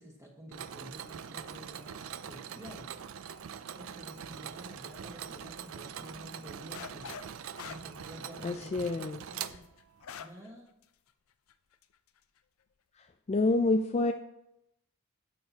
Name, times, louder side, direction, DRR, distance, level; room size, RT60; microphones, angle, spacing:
voice 1, 0.0-2.9 3.7-7.3 7.6-9.7 10.2-10.7, equal, 15° right, -1 dB, 1.4 m, -50 dB
Mechanisms, 0.5-10.1, right 8 dB, 70° right, 0.4 m, -43 dB
sound 1, 6.7-7.3 7.6-10.5 10.8-10.9 11.5-11.8, left 7 dB, 85° left, 0.5 m, -45 dB
voice 2, 8.4-9.2 13.3-14.1, left 2 dB, 30° left, 6 dB, 0.4 m, -27 dB
11.5 x 7.6 x 2.9 m, 0.82 s
head